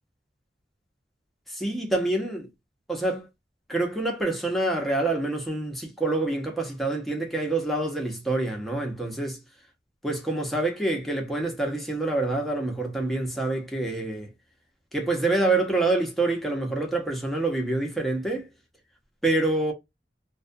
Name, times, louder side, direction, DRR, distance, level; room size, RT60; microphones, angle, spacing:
voice 1, 1.5-2.5 2.9-3.3 3.7-9.4 10.0-14.3 14.9-18.5 19.2-19.7, right 2 dB, ahead, 0.7 m, -26 dB
2.4 x 2.2 x 2.5 m
head